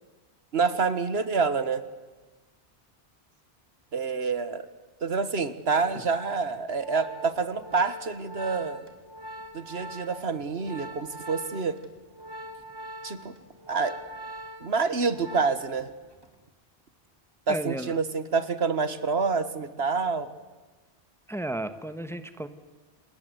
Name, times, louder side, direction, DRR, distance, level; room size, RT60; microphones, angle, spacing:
voice 1, 0.5-1.8 3.9-4.7 5.0-8.8 9.5-11.8 13.0-13.3 13.7-13.9 14.6-15.9 17.5-20.3, right 4 dB, 75° right, 13 dB, 1.7 m, -27 dB
Organ, 5.8-15.8 16.1-16.4, equal, 20° right, 2.8 m, -43 dB
voice 2, 17.5-18.0 21.3-22.5, right 1 dB, ahead, 11 dB, 1.3 m, -33 dB
28.0 x 20.0 x 8.0 m, 1.3 s
omnidirectional pair, 1.1 m